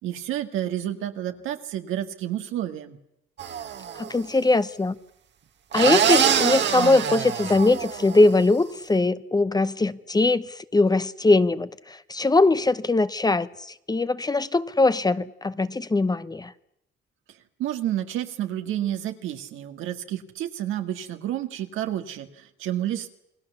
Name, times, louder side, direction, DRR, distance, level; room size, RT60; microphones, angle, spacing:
voice 1, 0.0-3.0 17.6-23.1, right 12 dB, 90° right, 2.0 m, -30 dB
sound 1, 3.4-4.1 5.7-8.3, right 8 dB, 65° right, 1.8 m, -24 dB
voice 2, 4.0-4.9 5.7-16.5, left 2 dB, 20° left, 0.9 m, -21 dB
29.0 x 20.5 x 7.1 m
cardioid pair, 90°, 20 cm